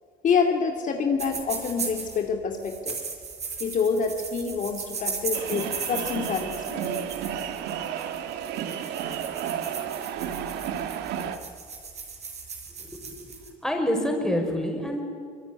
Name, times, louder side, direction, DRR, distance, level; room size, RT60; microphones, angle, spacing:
voice 1, 0.2-3.0 3.6-6.9, left 5 dB, 50° left, 3 dB, 2.6 m, -27 dB
sound 1, 1.2-2.2 2.6-13.5, right 5 dB, 40° right, 5.0 m, -37 dB
sound 2, 5.3-11.4, right 9 dB, 85° right, 1.7 m, -32 dB
voice 2, 12.9-13.2 13.6-15.0, equal, 5° left, 2 dB, 5.6 m, -27 dB
24.5 x 22.0 x 9.8 m, 2.2 s
cardioid pair, 110°, 17 cm